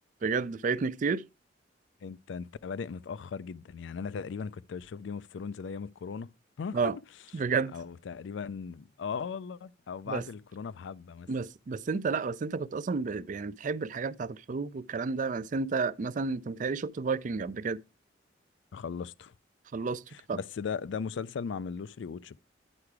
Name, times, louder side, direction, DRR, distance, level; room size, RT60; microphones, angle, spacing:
voice 1, 0.2-1.2 6.7-7.0 7.3-7.7 10.1-10.2 11.3-17.8 19.7-20.0 20.3-20.4, right 4 dB, 45° right, 0.4 m, -31 dB
voice 2, 2.0-6.8 7.7-11.3 18.7-19.3 20.1-22.4, left 6 dB, 90° left, 0.4 m, -38 dB
10.0 x 4.8 x 4.7 m
head